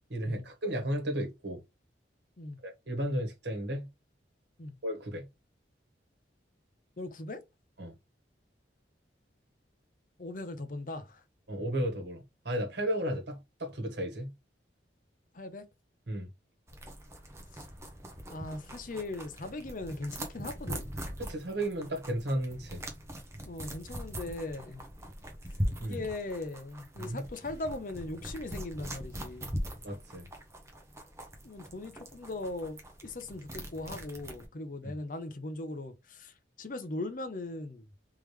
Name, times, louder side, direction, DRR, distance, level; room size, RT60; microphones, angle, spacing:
voice 1, 0.1-1.6 2.6-3.9 4.8-5.3 7.8-7.9 11.5-14.3 16.1-16.3 21.2-22.8 25.8-26.0 27.0-27.2 29.8-30.3 34.8-35.0, right 1 dB, 65° right, 1.4 m, -34 dB
voice 2, 7.0-7.4 10.2-11.2 15.3-15.7 18.3-20.9 23.4-24.8 25.8-29.6 31.4-37.9, left 2 dB, 45° left, 0.6 m, -39 dB
sound 1, 16.7-34.4, equal, 15° right, 0.8 m, -41 dB
3.6 x 3.3 x 3.2 m
head